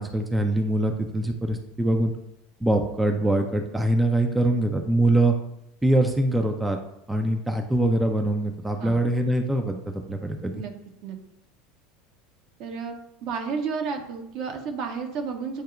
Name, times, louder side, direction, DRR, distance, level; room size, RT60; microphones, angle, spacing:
voice 1, 0.0-2.1 2.6-5.4 5.8-6.8 7.1-10.5, right 1 dB, 10° right, 4 dB, 0.5 m, -23 dB
voice 2, 12.6-12.9 13.2-15.6, right 5 dB, 50° right, 4 dB, 0.7 m, -32 dB
8.0 x 2.7 x 2.4 m, 0.80 s
figure-of-eight pair, 75°, 0 cm